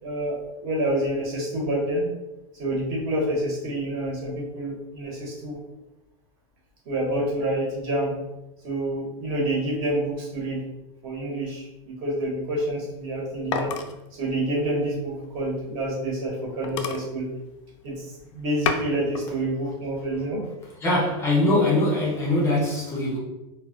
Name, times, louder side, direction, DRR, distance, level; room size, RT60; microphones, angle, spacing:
voice 1, 0.0-2.1 2.6-5.6 6.9-8.2 8.6-10.6 11.0-13.7 14.1-17.3 17.8-18.1 18.3-20.4, right 1 dB, 50° right, 1.0 m, -28 dB
sound 1, 12.9-16.0 16.3-16.4 16.6-18.0 18.4-19.3 19.7-20.2, left 6 dB, 75° left, 0.4 m, -32 dB
voice 2, 20.8-23.2, left 1 dB, 15° left, 0.5 m, -22 dB
2.2 x 2.1 x 3.7 m
supercardioid pair, 160°, 16 cm